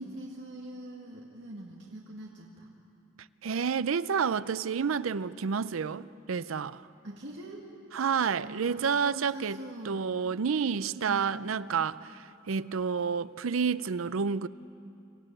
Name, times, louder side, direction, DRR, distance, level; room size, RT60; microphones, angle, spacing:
voice 1, 0.0-2.7 7.0-7.7 8.4-10.0 11.0-11.5, right 1 dB, 65° right, 1.9 m, -43 dB
voice 2, 3.4-6.8 7.9-14.5, right 6 dB, 80° right, 0.5 m, -30 dB
25.5 x 15.5 x 9.0 m
head